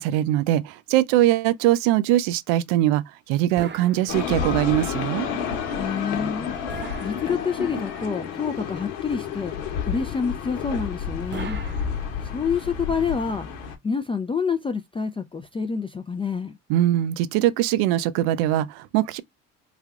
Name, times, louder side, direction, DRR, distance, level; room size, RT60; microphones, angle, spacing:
voice 1, 0.0-5.3 16.7-19.2, right 13 dB, 80° right, 0.5 m, -22 dB
sound 1, 3.6-4.8 6.7-7.9 11.3-12.6, right 5 dB, 30° right, 0.8 m, -39 dB
sound 2, 4.1-13.8, left 7 dB, 85° left, 1.0 m, -30 dB
voice 2, 5.8-9.5 9.8-11.6 12.2-13.5 13.8-16.6, left 5 dB, 15° left, 0.4 m, -28 dB
3.3 x 2.3 x 3.5 m
supercardioid pair, 70°, 36 cm